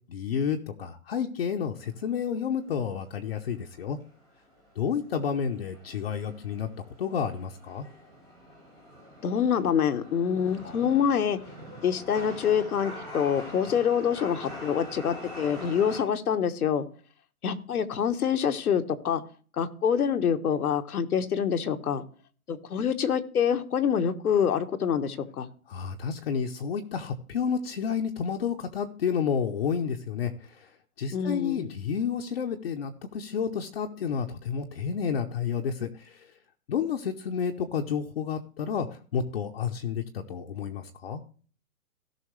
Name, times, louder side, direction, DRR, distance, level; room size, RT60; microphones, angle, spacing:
voice 1, 0.1-4.0 4.8-6.7 7.0-7.9 25.7-30.7 31.0-36.3 36.7-41.2, left 7 dB, 40° left, 3 dB, 0.8 m, -30 dB
Chatter / Subway metro underground, 1.8-16.0, left 1 dB, 5° left, 0.5 m, -45 dB
voice 2, 9.2-11.4 11.8-16.9 17.4-19.2 19.6-22.0 22.5-25.5 31.1-31.7, left 8 dB, 75° left, 7 dB, 1.3 m, -26 dB
17.0 x 5.8 x 3.2 m, 0.41 s
hypercardioid pair, 160°, 44 cm